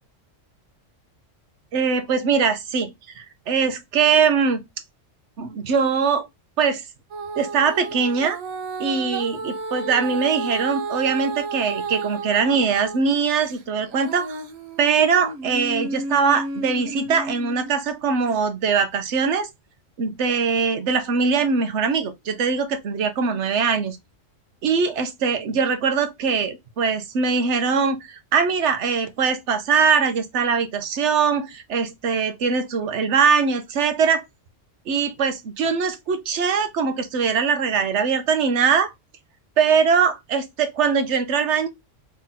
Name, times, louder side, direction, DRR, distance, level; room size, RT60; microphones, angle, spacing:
voice 1, 1.7-4.6 5.4-6.3 6.6-6.8 7.4-8.4 8.8-14.3 14.8-19.5 20.0-24.0 24.6-34.2 34.9-38.9 39.6-41.7, right 5 dB, 65° right, 1.1 m, -22 dB
Female singing, 7.1-13.0 13.5-17.8 18.4-18.5, right 3 dB, 90° right, 1.2 m, -32 dB
3.8 x 3.3 x 4.1 m
omnidirectional pair, 1.3 m